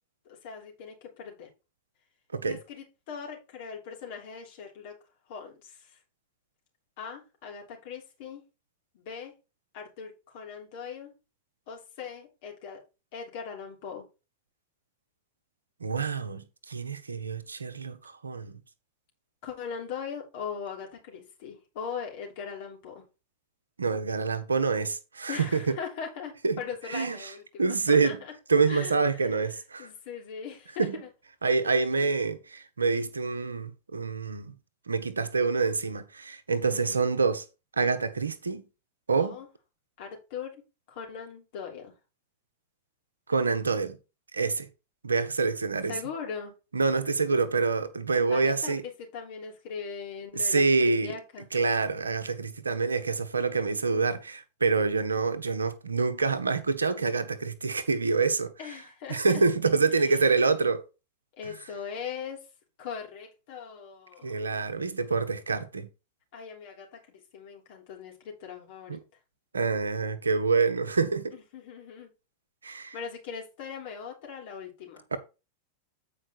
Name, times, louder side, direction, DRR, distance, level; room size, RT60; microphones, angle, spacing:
voice 1, 0.3-1.5 2.4-5.0 5.3-6.0 7.0-8.4 8.9-9.4 9.7-11.1 11.7-12.8 13.1-14.1 19.4-23.0 25.3-28.4 28.7-31.1 36.7-37.2 39.2-39.5 40.0-40.6 40.9-41.9 45.9-46.5 48.3-51.5 58.6-59.4 60.0-60.3 61.4-62.5 62.8-64.5 66.3-69.0 71.3-72.1 72.7-75.0, left 6 dB, 50° left, 3.4 m, -40 dB
voice 2, 15.8-18.0 18.2-18.6 23.8-25.6 26.4-26.6 26.9-27.3 27.6-28.2 28.5-29.9 30.8-31.0 31.4-34.5 34.9-37.4 37.8-38.6 39.1-39.4 43.3-44.0 44.3-44.7 45.0-45.9 46.7-48.8 50.3-51.1 51.5-58.5 59.1-60.8 64.2-65.9 68.9-69.0 69.5-71.3 72.6-72.9 75.1-75.2, right 4 dB, 75° right, 1.0 m, -26 dB
8.8 x 4.9 x 4.4 m
figure-of-eight pair, 90°, 0 cm